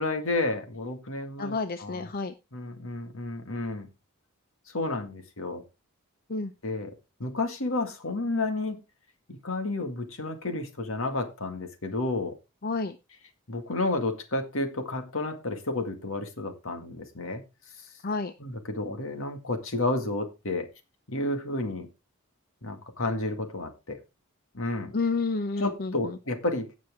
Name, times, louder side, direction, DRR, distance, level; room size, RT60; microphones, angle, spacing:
voice 1, 0.0-2.1 2.5-3.9 4.7-5.6 6.6-6.9 7.2-8.8 9.3-12.3 13.5-17.4 18.4-20.7 21.1-21.9 22.6-24.0 24.5-25.0 25.6-26.7, left 2 dB, 65° left, 2.0 m, -31 dB
voice 2, 1.4-2.3 6.3-6.5 12.6-13.0 18.0-18.3 24.9-26.2, left 3 dB, 40° left, 0.6 m, -30 dB
17.0 x 6.2 x 3.6 m
head